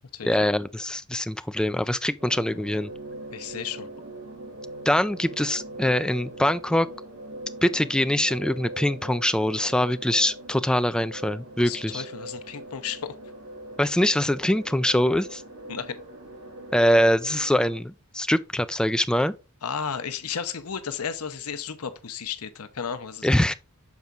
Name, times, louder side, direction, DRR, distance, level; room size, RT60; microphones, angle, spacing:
voice 1, 0.2-2.9 4.9-6.9 7.6-12.0 13.8-15.4 16.7-19.3 23.2-23.5, left 1 dB, 5° left, 0.3 m, -23 dB
sound 1, 2.2-17.8, right 1 dB, 70° right, 1.9 m, -41 dB
voice 2, 3.3-3.9 11.6-13.1 15.7-16.0 19.6-23.3, left 7 dB, 75° left, 0.8 m, -33 dB
7.2 x 4.6 x 3.8 m
head